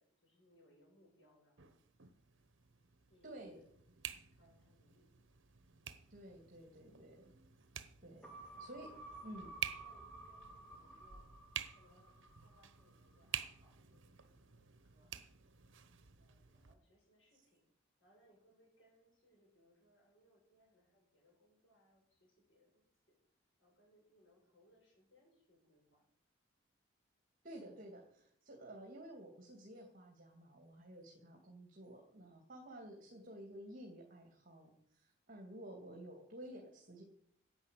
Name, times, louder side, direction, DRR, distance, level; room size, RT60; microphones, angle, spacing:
voice 1, 0.0-1.8 3.1-3.6 4.3-5.1 6.7-7.0 8.3-8.7 9.8-11.3 11.7-15.1 16.2-17.6 18.0-22.9 23.6-26.1, equal, 70° left, 0 dB, 7.0 m, -71 dB
sound 1, 1.6-16.7, right 10 dB, 70° right, 1.1 m, -50 dB
voice 2, 3.2-3.6 6.1-7.3 8.0-8.3 8.6-8.9 9.2-9.5 27.4-37.0, right 1 dB, 45° right, 1 dB, 2.5 m, -52 dB
sound 2, 8.2-12.9 13.3-13.4, right 2 dB, 5° left, 2.4 m, -54 dB
11.0 x 9.4 x 8.3 m, 0.68 s
head